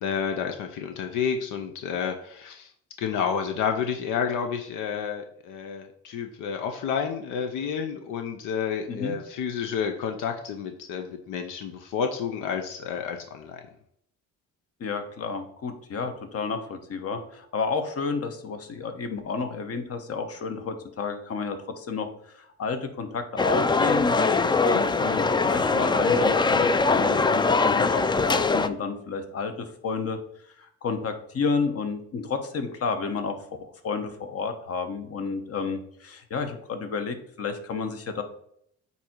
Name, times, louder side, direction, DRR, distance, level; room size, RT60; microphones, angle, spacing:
voice 1, 0.0-2.7 3.0-13.6, left 7 dB, 90° left, 6 dB, 0.7 m, -30 dB
voice 2, 14.8-24.4 24.6-30.2 30.6-33.4 33.8-38.2, left 5 dB, 50° left, 7 dB, 1.1 m, -31 dB
sound 1, 23.4-28.7, left 3 dB, 15° left, 0.3 m, -22 dB
8.3 x 2.8 x 4.5 m, 0.68 s
cardioid pair, 90°, 30 cm